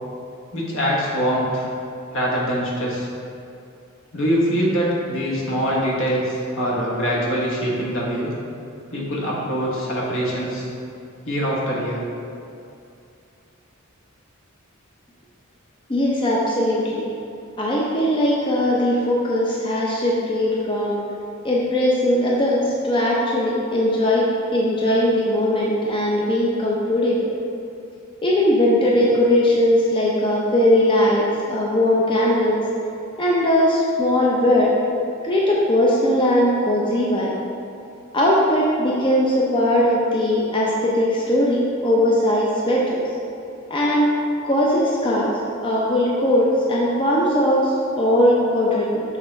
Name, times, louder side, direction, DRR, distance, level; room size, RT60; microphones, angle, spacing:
voice 1, 0.5-1.7 2.1-3.1 4.1-8.3 8.9-10.7 11.2-12.0, equal, 65° left, -5 dB, 1.4 m, -23 dB
voice 2, 15.9-17.1 17.6-21.0 21.4-27.2 28.2-32.6 33.2-34.7 35.2-37.3 38.1-43.0 43.7-44.1 44.4-45.3 45.6-49.0, left 1 dB, 25° left, -4 dB, 0.6 m, -19 dB
6.4 x 3.5 x 5.2 m, 2.6 s
head